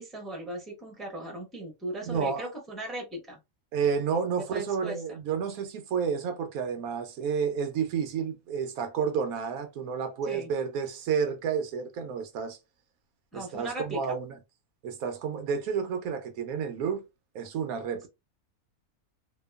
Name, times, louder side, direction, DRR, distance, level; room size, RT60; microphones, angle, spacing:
voice 1, 0.0-3.4 4.5-5.0 10.2-10.5 13.3-14.0, right 1 dB, ahead, 0.7 m, -37 dB
voice 2, 2.1-2.5 3.7-12.6 13.3-14.4 14.8-17.0 17.3-18.1, right 6 dB, 85° right, 1.1 m, -30 dB
2.8 x 2.2 x 2.2 m
omnidirectional pair, 1.5 m